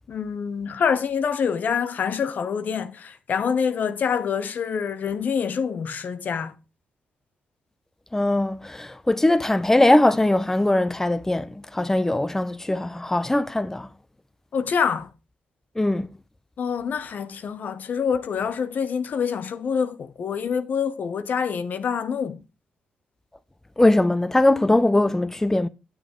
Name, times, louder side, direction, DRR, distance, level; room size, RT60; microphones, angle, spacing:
voice 1, 0.1-6.5 14.5-15.1 16.6-22.4, left 6 dB, 65° left, 0.8 m, -26 dB
voice 2, 8.1-13.9 15.8-16.1 23.8-25.7, left 1 dB, 15° left, 0.6 m, -21 dB
8.9 x 7.2 x 3.6 m
cardioid pair, 60°, 3 cm